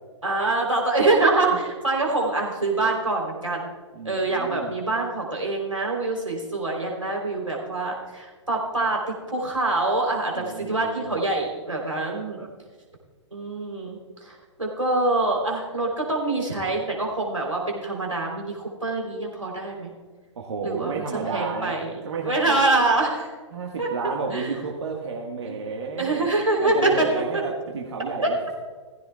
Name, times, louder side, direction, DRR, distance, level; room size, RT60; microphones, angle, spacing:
voice 1, 0.2-3.7 4.0-12.5 13.3-19.9 20.6-21.9 22.2-23.3 23.8-23.9 24.3-24.6 25.5-25.6 26.0-27.1 27.3-27.4 28.2-28.3, right 2 dB, 90° right, -1 dB, 3.5 m, -25 dB
voice 2, 3.9-4.7 10.3-11.3 20.4-21.8 22.0-22.6 23.5-26.3 26.6-28.3, right 4 dB, 60° right, 0 dB, 1.6 m, -32 dB
17.5 x 15.0 x 2.3 m, 1.5 s
figure-of-eight pair, 120°, 16 cm